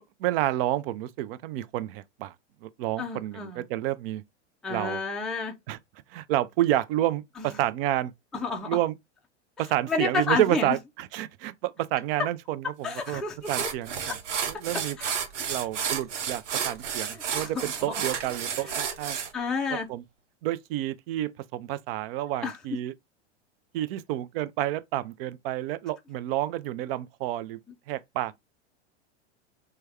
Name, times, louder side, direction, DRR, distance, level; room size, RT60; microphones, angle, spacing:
voice 1, 0.2-2.3 2.6-4.2 4.7-5.0 5.7-5.8 6.1-8.1 8.6-8.9 9.6-13.2 13.5-14.2 14.5-15.0 15.5-19.2 19.9-20.0 20.4-22.9 23.7-27.6 27.9-28.4, right 14 dB, 55° right, 0.5 m, -29 dB
voice 2, 3.0-3.6 4.6-5.5 8.3-8.7 9.9-10.8 12.8-13.7 15.0-15.1 17.1-18.0 18.6-18.7 19.3-19.9 22.4-22.6, left 4 dB, ahead, 0.4 m, -30 dB
sound 1, 13.0-13.1 13.5-19.3, right 7 dB, 80° right, 0.8 m, -31 dB
3.3 x 2.2 x 3.2 m
hypercardioid pair, 105°, 35 cm